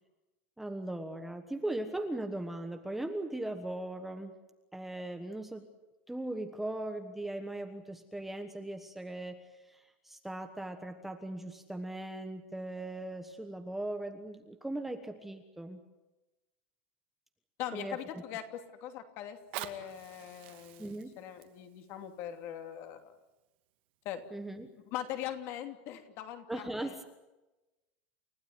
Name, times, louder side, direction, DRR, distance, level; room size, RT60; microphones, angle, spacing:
voice 1, 0.6-4.3 4.7-5.7 6.1-15.8 17.7-18.0 20.8-21.1 24.3-24.7 26.5-27.0, right 1 dB, 5° right, 5 dB, 1.3 m, -39 dB
voice 2, 17.6-23.1 24.0-24.2 24.9-27.0, left 11 dB, 40° left, 7 dB, 2.9 m, -41 dB
Fire, 19.3-24.2 24.9-25.0, right 15 dB, 55° right, 2.3 m, -48 dB
30.0 x 16.0 x 9.6 m, 1.0 s
supercardioid pair, 180°, 7 cm